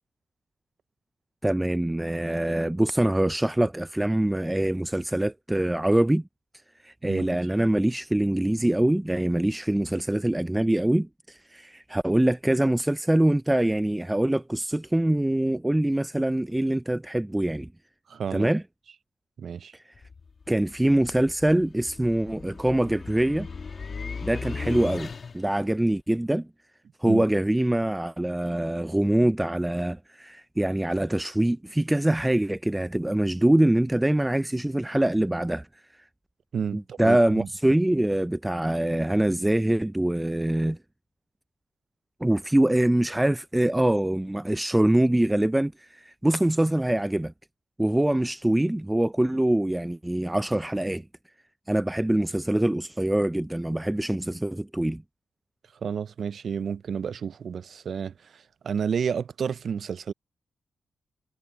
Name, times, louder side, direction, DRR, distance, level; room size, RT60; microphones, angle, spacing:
voice 1, 1.4-6.2 6.8-17.7 18.3-18.6 19.7-19.8 20.5-23.5 24.2-26.5 27.0-35.7 36.7-40.8 42.2-47.3 47.8-51.0 51.7-55.0, right 1 dB, 15° right, 0.4 m, -24 dB
voice 2, 7.0-7.4 18.1-18.5 19.4-19.7 27.1-27.2 36.5-37.5 55.8-60.1, right 7 dB, 65° right, 0.5 m, -31 dB
sound 1, 20.0-25.6, left 5 dB, 55° left, 2.1 m, -38 dB
supercardioid pair, 45°, 0 cm